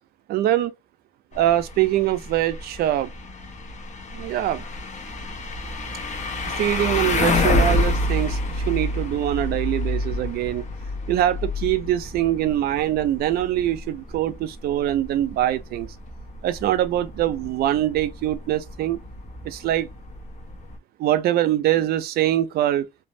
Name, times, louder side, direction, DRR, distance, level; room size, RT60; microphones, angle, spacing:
voice 1, 0.3-0.7 1.3-3.1 4.1-4.6 6.6-10.7 11.1-15.9 16.4-19.0 19.4-19.9 21.0-22.9, right 13 dB, 65° right, 0.4 m, -23 dB
sound 1, 1.3-20.8, left 2 dB, 45° left, 0.7 m, -29 dB
3.2 x 2.0 x 2.6 m
cardioid pair, 110°, 17 cm